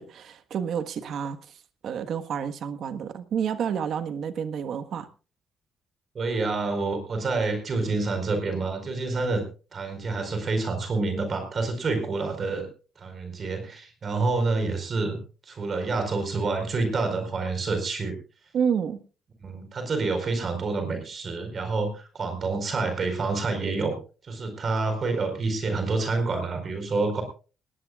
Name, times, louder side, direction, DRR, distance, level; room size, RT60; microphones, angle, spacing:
voice 1, 0.0-1.4 1.8-5.1 18.5-19.0, right 7 dB, 70° right, 9 dB, 1.4 m, -29 dB
voice 2, 6.1-9.4 9.7-12.7 13.0-18.2 19.4-24.0 24.2-27.2, right 3 dB, 45° right, 6 dB, 4.6 m, -28 dB
19.5 x 18.0 x 2.4 m, 0.35 s
cardioid pair, 90°, 0 cm